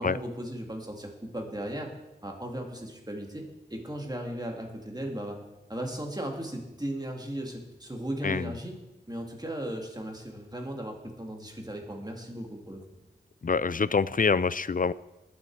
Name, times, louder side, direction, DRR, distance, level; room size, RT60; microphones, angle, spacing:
voice 1, 0.0-1.9 2.2-3.4 3.7-5.4 5.7-8.8 9.1-12.8, right 1 dB, 20° right, 1 dB, 2.2 m, -36 dB
voice 2, 13.4-14.9, left 5 dB, 45° left, 17 dB, 0.4 m, -25 dB
20.0 x 7.2 x 4.7 m, 0.99 s
wide cardioid pair, 45°, 19 cm